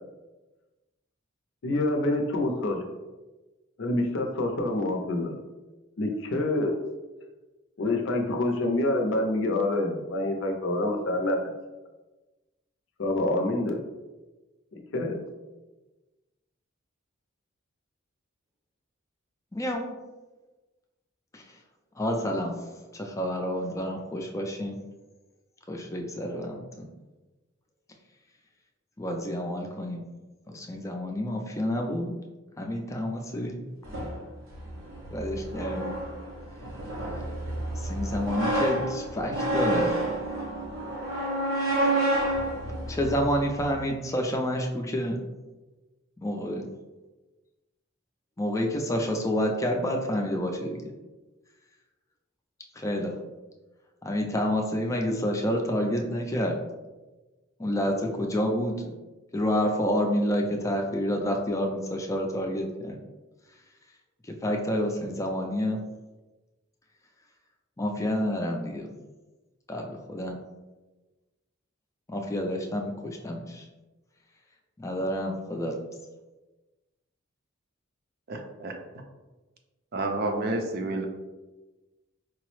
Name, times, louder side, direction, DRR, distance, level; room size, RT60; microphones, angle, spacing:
voice 1, 1.6-3.0 3.8-5.4 6.0-6.7 7.8-11.4 13.0-13.8 14.9-15.2, left 2 dB, 70° left, 3 dB, 0.5 m, -26 dB
voice 2, 19.5-19.9 21.3-21.4 22.0-24.8 25.7-26.9 29.0-30.0 30.5-32.2 32.6-33.6 35.1-36.0 37.8-40.0 42.9-45.2 46.2-46.7 48.4-50.9 52.8-53.1 54.0-56.6 57.6-58.9 59.3-63.0 64.3-65.8 67.8-68.9 69.7-70.4 72.1-73.6 74.8-75.7, equal, 15° left, 1 dB, 0.4 m, -29 dB
sound 1, 33.8-43.8, right 1 dB, 85° right, 0.7 m, -30 dB
voice 3, 78.3-78.8 79.9-81.1, right 2 dB, 50° right, 4 dB, 0.5 m, -29 dB
4.6 x 2.0 x 3.0 m, 1.1 s
head